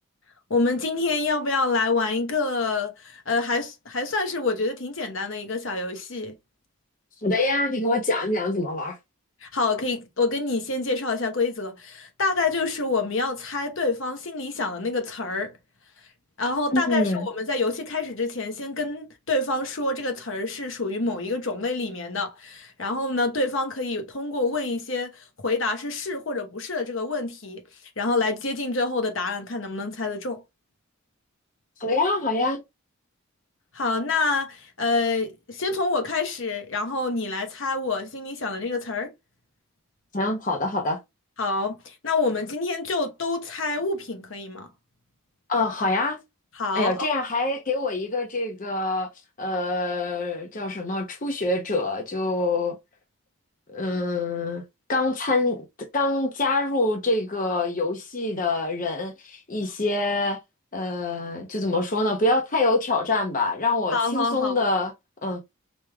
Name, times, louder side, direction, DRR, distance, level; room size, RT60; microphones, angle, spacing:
voice 1, 0.5-6.3 9.4-15.5 16.4-27.6 28.0-30.4 33.7-39.1 41.4-44.7 46.6-47.1 63.9-64.5, left 3 dB, 60° left, 1.0 m, -27 dB
voice 2, 7.2-9.0 16.7-17.3 31.8-32.6 40.1-41.0 45.5-46.2 46.7-49.1 49.4-52.8 53.7-54.6 54.9-55.6 55.9-60.4 60.7-64.9 65.2-65.4, left 2 dB, 35° left, 0.8 m, -25 dB
5.1 x 3.5 x 2.3 m
head